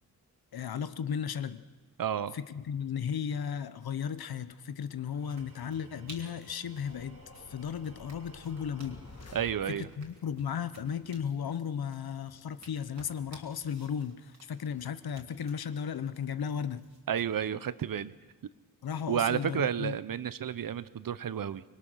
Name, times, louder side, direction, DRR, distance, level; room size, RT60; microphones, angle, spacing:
voice 1, 0.5-1.6 2.3-7.2 7.5-9.0 9.7-16.9 18.8-20.0, left 7 dB, 80° left, 13 dB, 1.0 m, -35 dB
voice 2, 2.0-2.4 9.3-9.9 17.1-18.1 19.1-21.6, right 9 dB, 65° right, 16 dB, 0.8 m, -31 dB
Tools, 4.9-10.3, right 5 dB, 85° right, 2.7 m, -58 dB
sound 1, 5.3-17.3, right 2 dB, 45° right, 3.2 m, -57 dB
sound 2, 6.8-10.2, left 3 dB, 45° left, 1.9 m, -51 dB
25.0 x 21.5 x 6.3 m, 1.3 s
wide cardioid pair, 135°, 36 cm